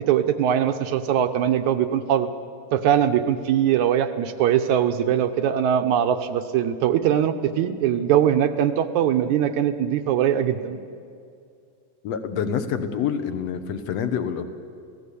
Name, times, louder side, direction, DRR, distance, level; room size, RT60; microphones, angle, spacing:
voice 1, 0.1-2.3 2.7-10.8, right 9 dB, 70° right, 8 dB, 2.0 m, -21 dB
voice 2, 12.0-14.4, left 7 dB, 60° left, 9 dB, 2.1 m, -27 dB
27.5 x 17.5 x 8.4 m, 2.4 s
omnidirectional pair, 4.1 m